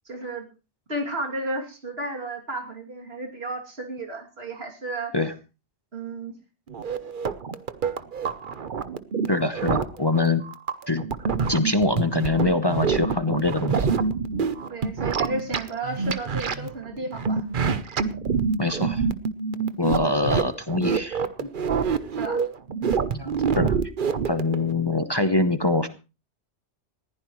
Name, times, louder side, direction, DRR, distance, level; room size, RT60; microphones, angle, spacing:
voice 1, 0.0-0.5 0.9-5.1 5.9-6.3 14.7-17.4 19.9-20.2 22.2-22.4, right 2 dB, 70° right, 2 dB, 3.1 m, -33 dB
sound 1, 6.7-24.7, right 5 dB, 50° right, 1.0 m, -26 dB
voice 2, 9.3-10.4 10.9-11.0 11.5-13.9 18.6-19.0 19.8-21.5 23.1-23.8 24.3-25.9, left 2 dB, 25° left, 9 dB, 0.9 m, -24 dB
20.5 x 15.0 x 3.1 m, 0.32 s
omnidirectional pair, 1.1 m